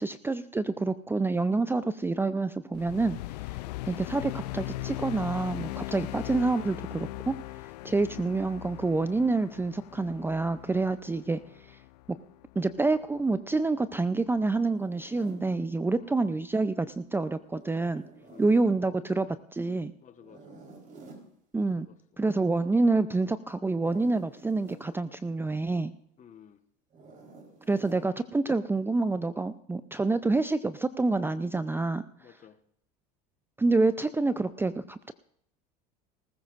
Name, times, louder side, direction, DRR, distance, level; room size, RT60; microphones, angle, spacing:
voice 1, 0.0-3.2 3.9-7.4 7.8-11.8 12.1-12.2 12.6-18.0 18.4-19.9 21.5-21.9 22.2-25.9 27.7-32.0 33.6-35.1, right 3 dB, 10° right, 13 dB, 0.5 m, -27 dB
sound 1, 2.7-13.2, left 18 dB, 80° left, 0.4 m, -40 dB
Zipper (clothing), 14.6-15.5 17.4-18.6 20.2-21.3 23.7-24.9 26.9-28.0, right 3 dB, 40° right, 4.1 m, -50 dB
voice 2, 15.9-16.4 18.2-18.6 20.0-20.6 21.7-22.0 26.2-26.6 32.2-32.6, left 8 dB, 35° left, 10 dB, 1.3 m, -54 dB
19.5 x 14.5 x 2.5 m, 0.69 s
hypercardioid pair, 85°, 21 cm